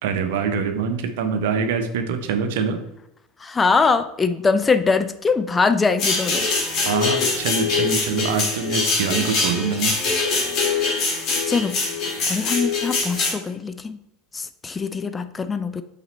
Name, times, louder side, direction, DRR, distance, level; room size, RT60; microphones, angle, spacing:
voice 1, 0.0-2.8 6.9-9.9, right 6 dB, 60° right, 7 dB, 0.7 m, -24 dB
voice 2, 3.4-6.5 11.0-11.2 11.5-11.8 12.3-14.0 14.3-15.8, left 4 dB, 20° left, 11 dB, 0.4 m, -22 dB
sound 1, 6.0-13.3, left 4 dB, 45° left, 1.7 m, -23 dB
5.7 x 4.2 x 4.1 m, 0.84 s
figure-of-eight pair, 75°, 0 cm